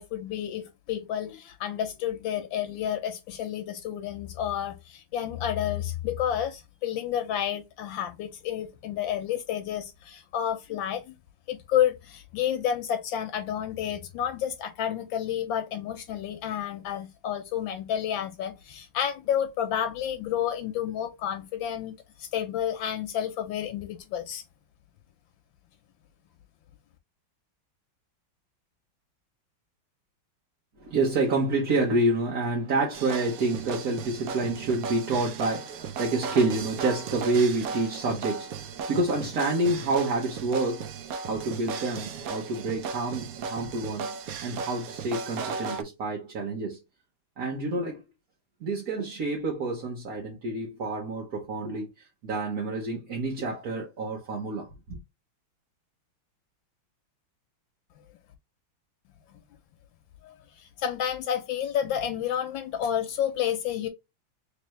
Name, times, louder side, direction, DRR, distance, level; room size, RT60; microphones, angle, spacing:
voice 1, 0.0-11.1 11.5-24.4 60.2-63.9, left 10 dB, 80° left, 1.3 m, -30 dB
voice 2, 30.8-40.9 41.3-46.8 47.4-48.0 48.6-55.0, right 2 dB, 55° right, 1.3 m, -28 dB
sound 1, 32.9-45.8, right 5 dB, 75° right, 0.8 m, -36 dB
3.3 x 3.3 x 3.1 m
omnidirectional pair, 2.2 m